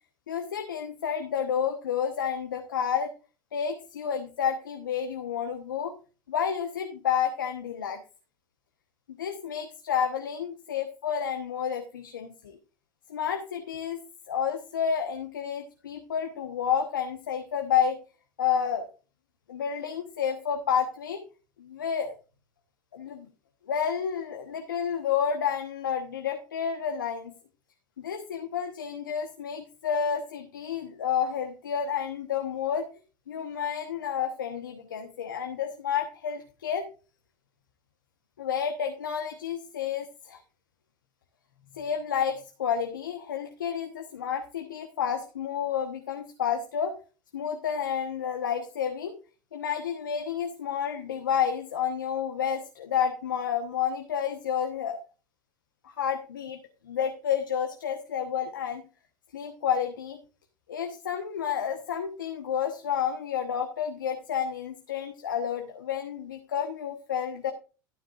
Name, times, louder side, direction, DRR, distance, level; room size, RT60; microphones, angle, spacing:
voice 1, 0.3-3.1 3.5-5.9 6.3-8.0 9.1-12.6 13.1-14.0 14.3-18.0 18.4-18.9 19.5-21.2 21.6-22.1 22.9-23.3 23.6-27.3 28.0-32.8 33.3-36.9 38.4-40.4 41.7-46.9 47.3-49.1 49.5-55.0 55.8-56.6 56.8-58.8 59.3-60.2 60.7-67.5, left 8 dB, 90° left, 6 dB, 1.1 m, -30 dB
12.5 x 9.9 x 2.4 m, 0.34 s
hypercardioid pair, 85°, 10 cm